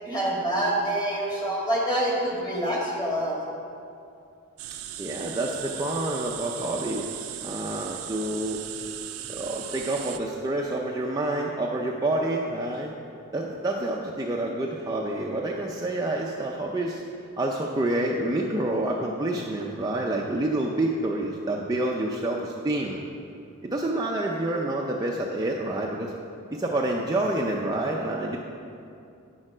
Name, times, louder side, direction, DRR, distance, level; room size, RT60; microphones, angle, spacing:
voice 1, 0.0-3.4, right 1 dB, 20° left, -4 dB, 1.9 m, -26 dB
sound 1, 4.6-10.2, right 12 dB, 75° right, 0.5 m, -37 dB
voice 2, 5.0-7.1 7.4-8.6 9.3-12.9 13.3-17.0 17.4-23.0 23.6-26.1 26.5-28.4, right 1 dB, 15° right, -2 dB, 0.5 m, -28 dB
9.7 x 6.6 x 6.0 m, 2.6 s
head